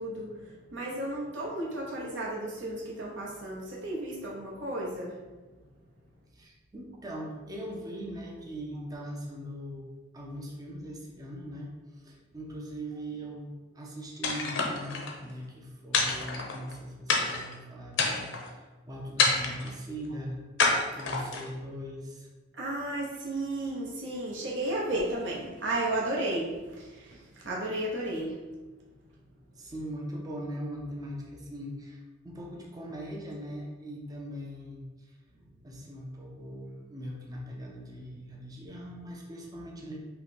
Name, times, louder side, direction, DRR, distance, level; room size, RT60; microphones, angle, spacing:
voice 1, 0.0-5.2 22.5-28.4, right 1 dB, 65° right, -4 dB, 1.1 m, -33 dB
voice 2, 6.3-20.4 20.7-22.3 29.6-34.9 35.6-40.0, equal, 20° right, -2 dB, 0.6 m, -40 dB
sound 1, 14.2-15.1 15.9-16.7 17.1-17.5 17.9-18.5 19.2-19.7 20.6-21.5, left 4 dB, 65° left, 0.8 m, -27 dB
5.4 x 2.2 x 4.2 m, 1.2 s
head